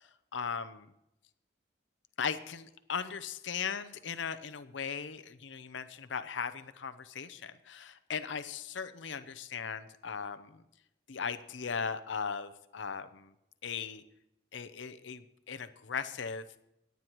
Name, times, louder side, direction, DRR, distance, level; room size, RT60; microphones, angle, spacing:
voice 1, 0.3-0.9 2.2-10.5 11.1-13.3 13.6-14.0 14.5-16.4, left 6 dB, 80° left, 11 dB, 0.7 m, -38 dB
18.0 x 9.4 x 3.0 m, 0.83 s
head